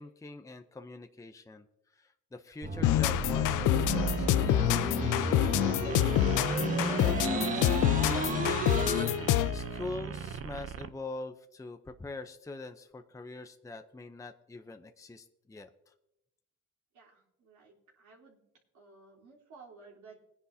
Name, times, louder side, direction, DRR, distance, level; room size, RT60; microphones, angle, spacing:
voice 1, 0.0-15.9, left 3 dB, 10° left, 7 dB, 0.6 m, -44 dB
sound 1, 2.6-9.0, right 3 dB, 25° right, 1.4 m, -33 dB
sound 2, 2.8-9.7, left 14 dB, 85° left, 0.6 m, -27 dB
sound 3, 3.7-10.9, right 7 dB, 50° right, 0.7 m, -40 dB
voice 2, 16.9-18.4 18.7-20.2, right 4 dB, 70° right, -3 dB, 3.6 m, -55 dB
20.0 x 10.0 x 2.8 m, 0.86 s
cardioid pair, 90°, 30 cm